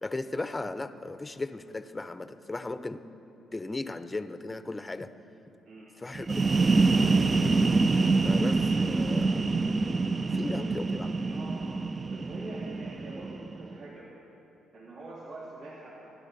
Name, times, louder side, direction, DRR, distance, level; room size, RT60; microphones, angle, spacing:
voice 1, 0.0-3.0 3.5-5.1 6.0-6.3 8.2-9.8 10.3-11.1, left 2 dB, 20° left, 10 dB, 0.7 m, -36 dB
sound 1, 6.1-13.8, right 3 dB, 35° right, 0.5 m, -26 dB
voice 2, 10.3-11.7 12.1-14.1 14.7-16.1, right 2 dB, 75° right, -7 dB, 3.0 m, -45 dB
26.0 x 12.0 x 4.1 m, 2.9 s
cardioid pair, 90°, 0 cm